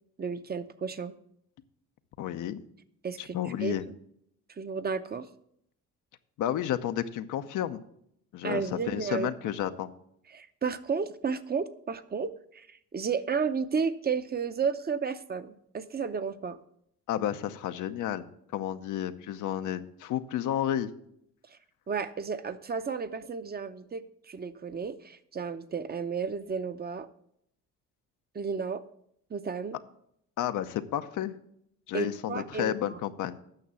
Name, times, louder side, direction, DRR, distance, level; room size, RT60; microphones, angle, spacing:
voice 1, 0.2-1.1 3.0-4.0 4.5-5.3 8.4-9.3 10.3-16.6 21.5-21.6 21.9-27.1 28.3-28.8 29.3-29.8 31.9-33.0, right 5 dB, 30° right, 11 dB, 0.7 m, -33 dB
voice 2, 2.2-2.6 3.2-3.8 6.4-7.8 8.3-9.9 17.1-18.3 18.5-20.9 30.4-31.3 31.9-33.4, left 11 dB, 80° left, 9 dB, 0.7 m, -31 dB
9.1 x 6.1 x 6.8 m, 0.72 s
cardioid pair, 90°, 30 cm